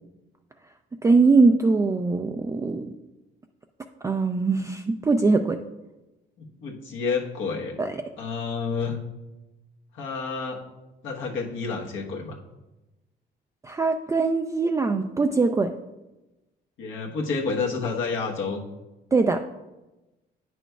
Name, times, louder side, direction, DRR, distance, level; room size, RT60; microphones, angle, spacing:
voice 1, 1.0-2.9 4.0-5.6 7.8-7.9 13.6-15.7 19.1-19.4, right 3 dB, 15° right, 5 dB, 0.3 m, -21 dB
voice 2, 6.4-7.7 8.2-9.0 9.9-10.6 11.0-12.4 16.8-18.6, left 4 dB, 75° left, -1 dB, 1.1 m, -29 dB
9.1 x 6.0 x 2.3 m, 1.0 s
cardioid pair, 90°, 20 cm